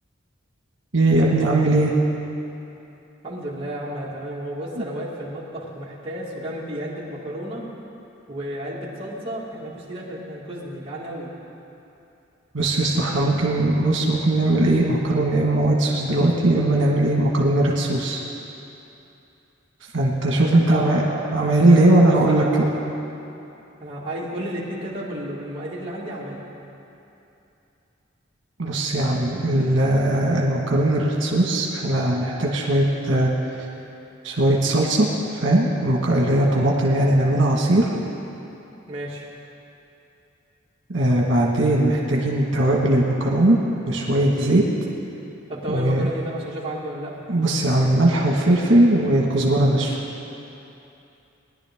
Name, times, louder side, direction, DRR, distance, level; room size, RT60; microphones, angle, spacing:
voice 1, 0.9-1.9 4.8-4.9 12.5-18.2 19.9-22.7 28.6-33.3 34.2-37.9 40.9-43.6 43.9-44.7 45.7-46.1 47.3-50.0, right 1 dB, 75° right, -2 dB, 1.5 m, -19 dB
voice 2, 3.2-7.7 8.3-11.3 20.4-22.7 23.8-26.4 38.9-39.3 45.5-47.2, right 1 dB, 30° right, -6 dB, 2.1 m, -32 dB
20.0 x 11.0 x 3.6 m, 2.9 s
head